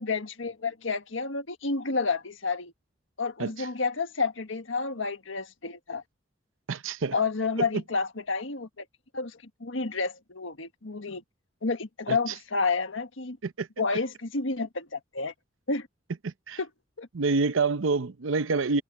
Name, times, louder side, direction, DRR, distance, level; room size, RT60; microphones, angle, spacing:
voice 1, 0.0-2.7 3.2-6.0 7.1-8.8 9.1-11.2 11.6-13.4 13.8-15.3 15.7-15.9 16.6-16.7 17.0-17.1, left 4 dB, 75° left, 1.6 m, -30 dB
voice 2, 6.7-7.2 7.6-7.7 12.1-12.3 13.4-13.7 16.2-16.6 17.1-18.8, right 4 dB, 90° right, 0.7 m, -27 dB
head